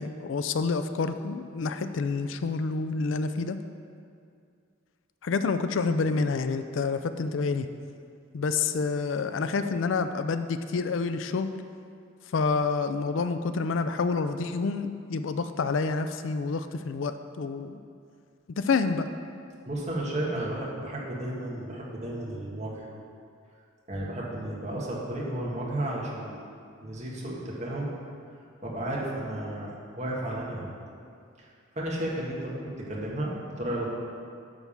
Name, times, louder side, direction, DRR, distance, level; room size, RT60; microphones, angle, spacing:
voice 1, 0.0-3.6 5.2-7.7 8.3-11.5 12.3-17.8 18.6-19.1, left 4 dB, 70° left, 10 dB, 0.4 m, -28 dB
voice 2, 19.7-22.9 23.9-26.4 26.8-27.9 28.6-30.7 31.4-33.9, right 1 dB, 35° right, -4 dB, 1.6 m, -33 dB
10.0 x 3.5 x 7.1 m, 2.3 s
head